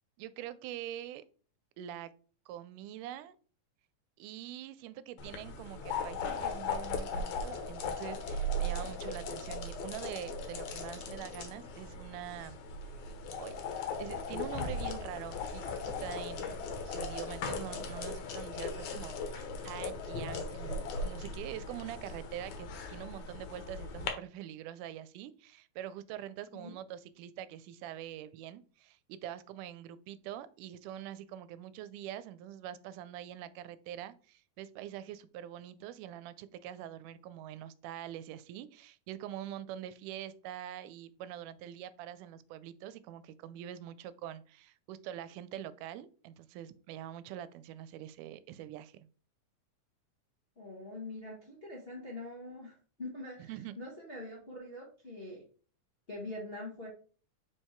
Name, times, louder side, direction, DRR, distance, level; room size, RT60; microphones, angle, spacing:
voice 1, 0.2-1.2 1.8-2.1 2.5-3.4 4.2-12.6 13.4-13.6 14.0-49.1 53.5-53.8, right 11 dB, 90° right, 2.1 m, -44 dB
sound 1, 5.2-24.1, left 2 dB, 70° left, 2.2 m, -38 dB
voice 2, 50.6-55.4 56.1-56.9, left 2 dB, 35° left, 1.0 m, -44 dB
4.9 x 4.6 x 4.4 m
omnidirectional pair, 3.6 m